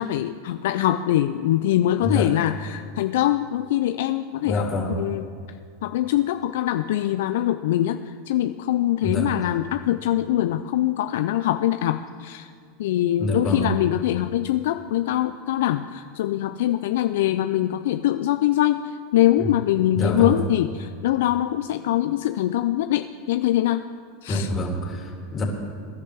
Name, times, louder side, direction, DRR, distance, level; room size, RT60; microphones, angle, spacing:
voice 1, 0.0-5.2 5.8-12.5 12.8-23.9 24.2-24.5, left 13 dB, 70° left, 9 dB, 0.4 m, -23 dB
voice 2, 2.0-2.3 4.4-4.9 9.0-9.3 13.2-13.7 19.4-19.5 19.9-20.4 24.3-25.4, left 1 dB, 30° left, 0 dB, 3.0 m, -26 dB
23.0 x 10.5 x 3.5 m, 2.2 s
hypercardioid pair, 95°, 0 cm